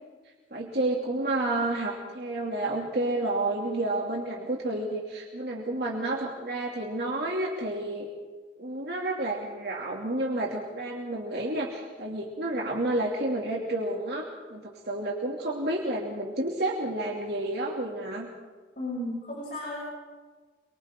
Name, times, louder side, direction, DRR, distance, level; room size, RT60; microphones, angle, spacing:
voice 1, 0.5-8.1 8.6-18.3, right 2 dB, 65° right, -2 dB, 2.7 m, -30 dB
voice 2, 18.8-19.8, left 1 dB, 50° left, -5 dB, 7.1 m, -34 dB
29.0 x 24.0 x 3.8 m, 1.4 s
head